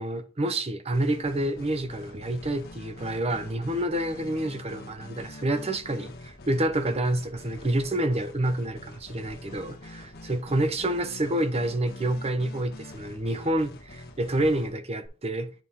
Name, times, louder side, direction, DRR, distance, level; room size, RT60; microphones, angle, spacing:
voice 1, 0.0-15.6, right 1 dB, 30° right, 0.7 m, -28 dB
sound 1, 0.9-15.1, left 1 dB, 45° left, 1.2 m, -45 dB
9.1 x 3.7 x 4.1 m
head